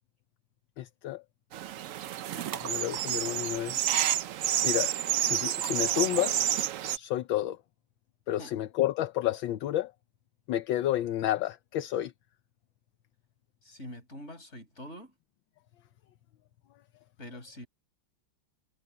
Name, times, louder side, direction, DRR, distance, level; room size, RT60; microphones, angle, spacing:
voice 1, 0.8-1.2 2.3-4.0 4.6-4.9 5.2-6.5 6.9-7.6 8.3-9.9 10.5-12.1, left 13 dB, 75° left, 1.5 m, -30 dB
sound 1, 1.5-7.0, right 11 dB, 75° right, 0.7 m, -29 dB
voice 2, 13.6-15.1 17.2-17.7, equal, 35° left, 6.2 m, -44 dB
omnidirectional pair, 2.2 m